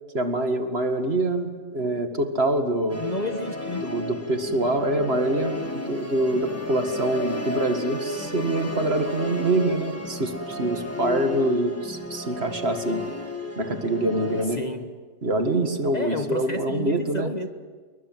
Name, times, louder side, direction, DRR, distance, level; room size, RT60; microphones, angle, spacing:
voice 1, 0.1-3.0 3.8-13.0 13.6-14.6 15.2-17.3, right 1 dB, 50° right, 2.1 m, -25 dB
Musical instrument, 2.9-14.5, left 2 dB, 10° left, 2.0 m, -33 dB
voice 2, 3.0-3.9 14.5-14.9 15.9-17.5, left 2 dB, 30° left, 1.2 m, -31 dB
28.0 x 22.5 x 7.8 m
omnidirectional pair, 1.4 m